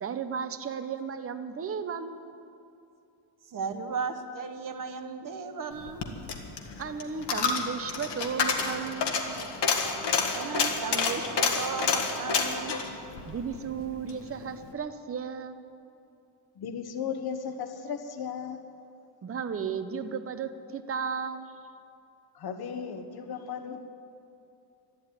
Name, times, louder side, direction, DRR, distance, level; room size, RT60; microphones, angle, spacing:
voice 1, 0.0-2.4 6.8-9.4 13.2-15.6 19.2-21.5, right 6 dB, 35° right, 9 dB, 0.7 m, -34 dB
voice 2, 3.5-6.0 10.3-12.8, right 5 dB, 50° right, 7 dB, 1.1 m, -35 dB
Coin (dropping), 5.8-14.2 14.5-14.6, left 5 dB, 85° left, 1.8 m, -29 dB
voice 3, 16.6-18.6 22.3-23.9, left 7 dB, 65° left, 8 dB, 1.1 m, -36 dB
13.0 x 11.5 x 9.5 m, 2.7 s
wide cardioid pair, 175°, 41 cm